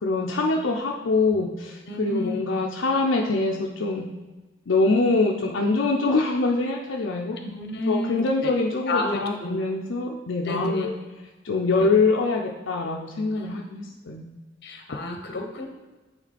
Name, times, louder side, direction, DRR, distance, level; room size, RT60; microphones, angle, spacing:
voice 1, 0.0-4.1 4.7-7.4 7.9-10.9 11.4-14.3, left 3 dB, 75° left, -1 dB, 0.6 m, -24 dB
voice 2, 1.9-2.4 7.4-8.5 8.9-9.6 10.4-10.9 11.8-11.9 13.3-13.5 14.6-15.7, left 2 dB, 55° left, 3 dB, 1.0 m, -30 dB
9.1 x 3.2 x 4.2 m, 1.2 s
head